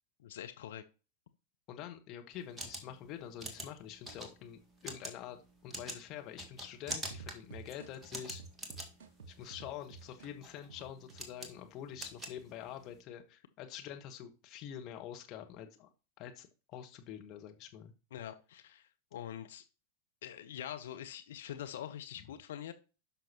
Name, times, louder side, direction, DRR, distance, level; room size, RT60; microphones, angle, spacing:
voice 1, 0.2-0.8 18.1-19.6 20.2-22.7, left 10 dB, 60° left, 8 dB, 0.7 m, -44 dB
voice 2, 1.7-8.4 9.3-15.9 16.2-17.9, left 10 dB, 35° left, 4 dB, 1.2 m, -46 dB
sound 1, 2.3-13.0, right 1 dB, 10° right, 1.7 m, -46 dB
sound 2, 7.1-11.5 11.9-12.6, right 5 dB, 55° right, 1.3 m, -51 dB
12.5 x 5.7 x 2.9 m, 0.33 s
figure-of-eight pair, 90°, 0 cm